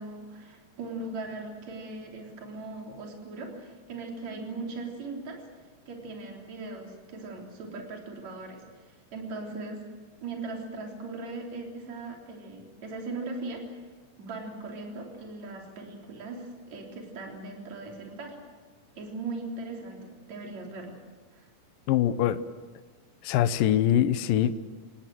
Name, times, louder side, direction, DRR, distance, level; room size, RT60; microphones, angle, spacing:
voice 1, 0.0-5.4 5.9-9.8 10.2-13.6 14.2-18.4 19.0-21.0 21.3-21.5, right 3 dB, 45° right, 0 dB, 4.7 m, -39 dB
voice 2, 21.9-22.4 23.2-24.5, left 11 dB, 70° left, 11 dB, 2.3 m, -23 dB
29.5 x 19.0 x 7.7 m, 1.4 s
omnidirectional pair, 4.6 m